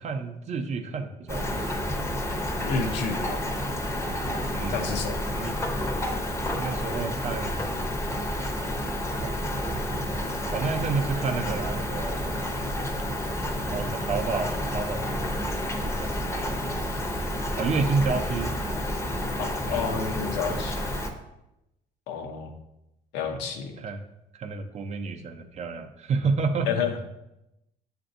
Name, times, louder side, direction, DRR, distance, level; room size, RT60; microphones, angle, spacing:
voice 1, 0.0-2.1 4.5-4.9 5.3-5.6 6.6-7.7 9.2-9.4 9.6-10.1 10.5-12.4 13.6-15.4 15.8-16.8 17.6-18.5 19.6-20.0 23.8-24.0 24.3-26.7, right 4 dB, 40° right, 6 dB, 0.5 m, -30 dB
Rain, 1.3-21.1, left 1 dB, 15° left, 0.6 m, -30 dB
voice 2, 2.7-3.4 4.7-5.2 19.4-20.9 22.1-22.5 23.1-23.8 26.7-26.9, left 6 dB, 85° left, 4 dB, 0.7 m, -30 dB
7.7 x 2.6 x 2.5 m, 0.89 s
cardioid pair, 110°, 17 cm